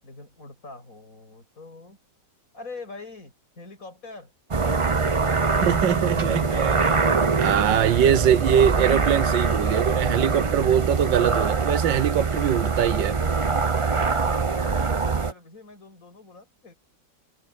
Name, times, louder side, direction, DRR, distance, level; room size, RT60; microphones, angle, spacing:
voice 1, 0.0-2.0 2.5-4.3 5.0-5.8 6.6-6.9 13.9-16.8, left 3 dB, 45° left, 8.3 m, -44 dB
sound 1, 4.5-15.3, right 4 dB, 35° right, 0.4 m, -23 dB
voice 2, 5.7-6.8 7.2-13.2, right 10 dB, 80° right, 1.6 m, -22 dB
omnidirectional pair, 2.0 m